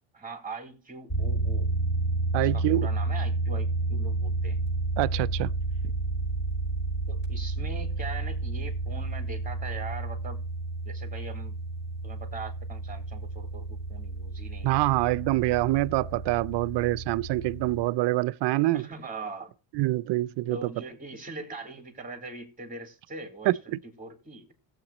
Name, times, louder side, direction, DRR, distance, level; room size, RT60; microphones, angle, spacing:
voice 1, 0.1-1.7 2.4-4.6 7.1-10.4 10.8-11.5 12.0-15.0 18.7-19.5 20.5-24.5, right 3 dB, 15° right, 3.3 m, -41 dB
sound 1, 1.1-17.8, right 3 dB, 25° left, 6.0 m, -31 dB
voice 2, 2.3-2.9 5.0-5.5 14.6-18.8 19.7-20.7 23.5-23.6, right 18 dB, 60° right, 0.5 m, -25 dB
16.5 x 8.1 x 3.0 m
cardioid pair, 95°, 47 cm